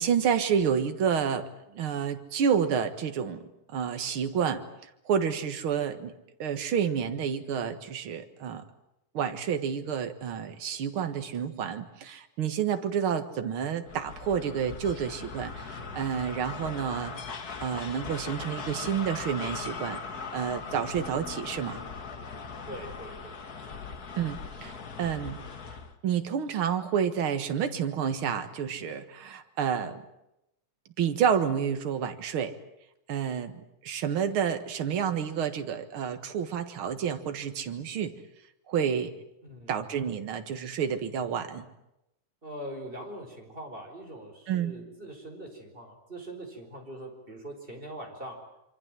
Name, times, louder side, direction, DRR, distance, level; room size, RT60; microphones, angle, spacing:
voice 1, 0.0-3.4 3.7-4.6 5.1-6.1 6.4-8.6 9.1-17.1 17.6-20.0 20.3-21.8 24.2-25.4 26.0-30.0 31.0-32.5 33.1-33.5 33.8-38.1 38.7-39.1 39.7-41.7 44.5-44.7, right 7 dB, 50° right, 8 dB, 2.1 m, -29 dB
sound 1, 13.9-26.0, left 5 dB, 40° left, 1.6 m, -39 dB
voice 2, 22.0-22.4 22.7-23.4 39.4-39.8 42.4-48.4, right 1 dB, 15° right, 3 dB, 4.6 m, -42 dB
26.5 x 24.5 x 7.6 m, 0.87 s
omnidirectional pair, 3.5 m